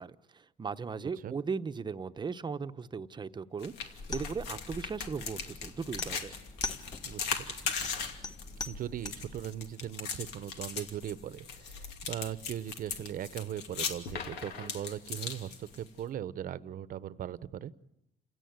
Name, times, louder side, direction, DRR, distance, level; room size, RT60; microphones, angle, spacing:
voice 1, 0.0-6.3, right 5 dB, 25° right, 10 dB, 0.9 m, -37 dB
sound 1, 3.6-16.0, left 6 dB, 90° left, 2.7 m, -39 dB
sound 2, 4.0-9.4, left 3 dB, 20° left, 1.3 m, -43 dB
voice 2, 7.0-7.7 8.6-17.7, right 11 dB, 55° right, 16 dB, 0.9 m, -39 dB
29.0 x 17.0 x 9.5 m, 0.86 s
cardioid pair, 110°, 17 cm